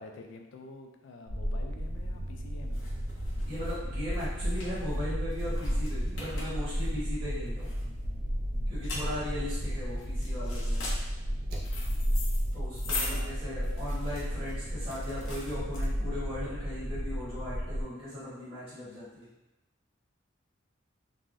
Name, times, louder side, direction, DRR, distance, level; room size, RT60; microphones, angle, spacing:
voice 1, 0.0-2.9 8.8-9.0 13.0-13.9, left 3 dB, 65° left, 3 dB, 0.4 m, -48 dB
sound 1, 1.3-17.8, equal, 50° right, 0.4 m, -33 dB
sound 2, 1.9-16.3, left 2 dB, 90° left, 0.7 m, -42 dB
voice 2, 3.5-7.7 8.7-10.9 12.5-19.3, left 1 dB, 25° right, -12 dB, 1.1 m, -38 dB
3.3 x 2.1 x 2.5 m, 0.98 s
head